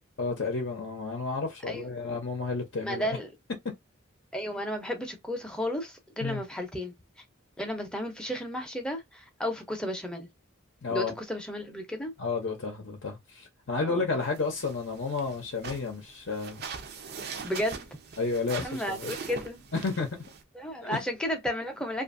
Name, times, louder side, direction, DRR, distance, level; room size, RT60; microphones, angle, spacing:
voice 1, 0.2-3.2 6.2-6.4 10.8-11.1 12.2-16.6 18.2-19.1 19.8-20.1 20.8-21.0, left 4 dB, 55° left, 0.6 m, -31 dB
voice 2, 2.8-3.3 4.3-6.9 7.6-10.3 10.9-12.1 13.8-14.2 17.4-17.8 18.6-19.6 20.5-22.0, equal, 5° left, 0.6 m, -33 dB
sound 1, 14.2-20.4, right 5 dB, 50° right, 0.5 m, -42 dB
2.6 x 2.5 x 2.5 m
head